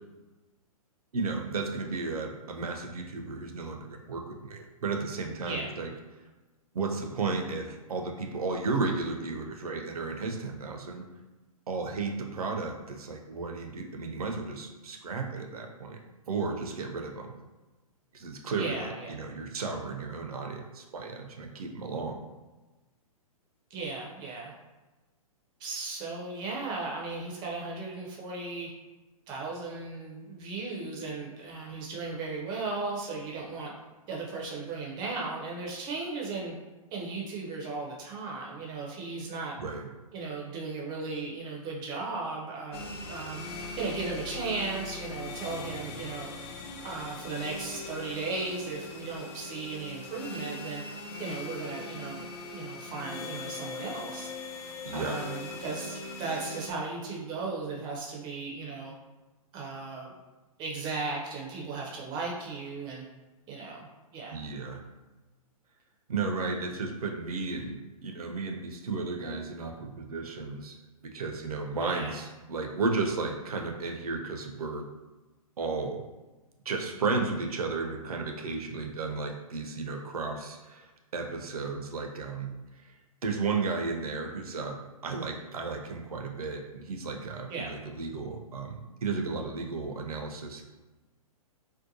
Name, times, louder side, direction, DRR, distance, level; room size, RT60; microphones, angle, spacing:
voice 1, 1.1-5.9 6.7-11.0 11.7-16.0 16.3-17.3 18.1-22.2 39.6-39.9 54.9-55.2 64.3-64.8 66.1-70.8 71.0-74.9 75.6-76.0 76.7-80.9 81.1-82.5 82.8-82.9 83.2-90.6, right 4 dB, 75° right, 3 dB, 0.5 m, -34 dB
voice 2, 18.5-19.2 23.7-24.5 25.6-28.7 29.3-33.7 34.1-36.6 36.9-39.5 40.1-43.4 43.8-46.3 46.8-50.8 51.2-54.3 54.9-58.9 59.5-60.1 60.6-63.0 63.5-64.4 71.8-72.2 87.5-87.7, right 3 dB, 20° right, -2 dB, 0.4 m, -36 dB
sound 1, 42.7-56.7, left 3 dB, 45° left, 0.4 m, -40 dB
2.6 x 2.1 x 2.6 m, 1.2 s
figure-of-eight pair, 120°, 19 cm